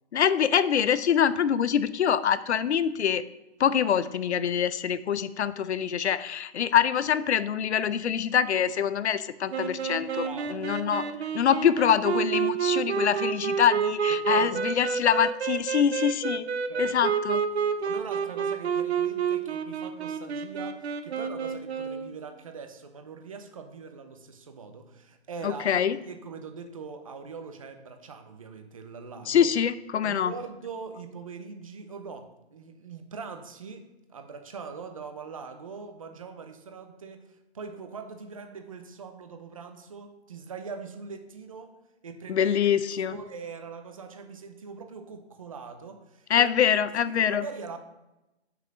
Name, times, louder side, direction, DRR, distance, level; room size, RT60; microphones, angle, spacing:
voice 1, 0.1-3.2 3.6-16.5 16.8-17.4 25.4-26.0 29.3-30.3 42.3-43.2 46.3-47.5, left 8 dB, 80° left, 15 dB, 0.6 m, -25 dB
sound 1, 9.5-22.1, right 7 dB, 70° right, 0.8 m, -29 dB
voice 2, 10.2-10.7 10.9-11.1 14.2-14.6 16.7-16.9 17.8-29.5 30.0-41.8 42.0-42.5 43.1-46.5 47.0-47.8, right 5 dB, 30° right, 6 dB, 0.6 m, -42 dB
5.8 x 5.6 x 6.2 m, 0.97 s
hypercardioid pair, 175°, 34 cm